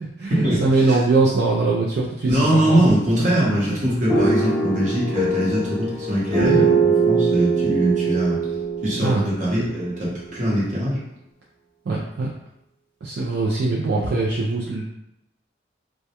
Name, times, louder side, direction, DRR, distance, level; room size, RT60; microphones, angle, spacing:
voice 1, 0.0-2.8 3.2-3.8 9.0-9.2 11.9-12.3 13.0-14.9, right 3 dB, 60° right, -5 dB, 0.3 m, -22 dB
voice 2, 2.2-8.4 8.8-11.0, right 1 dB, 40° right, -7 dB, 0.8 m, -22 dB
sound 1, 4.1-10.1, right 4 dB, 5° left, 0.5 m, -22 dB
2.2 x 2.1 x 2.8 m, 0.83 s
head